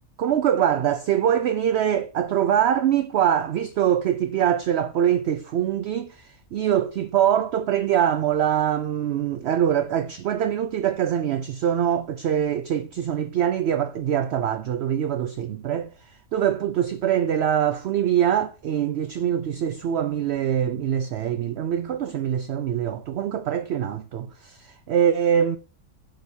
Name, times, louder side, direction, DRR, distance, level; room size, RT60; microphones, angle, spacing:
voice 1, 0.2-15.9 16.3-25.6, right 9 dB, 65° right, 0.6 m, -23 dB
9.0 x 6.2 x 2.7 m
omnidirectional pair, 1.5 m